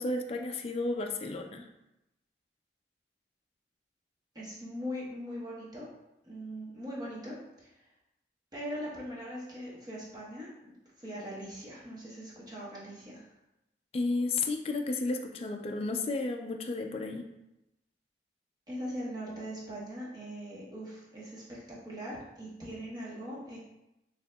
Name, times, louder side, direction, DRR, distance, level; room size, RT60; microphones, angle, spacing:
voice 1, 0.0-1.7 13.9-17.3, left 3 dB, 35° left, 3 dB, 0.3 m, -32 dB
voice 2, 4.3-5.9 6.2-7.7 8.5-13.3 18.7-23.6, equal, 20° right, -6 dB, 1.1 m, -41 dB
6.8 x 2.8 x 2.2 m, 0.90 s
head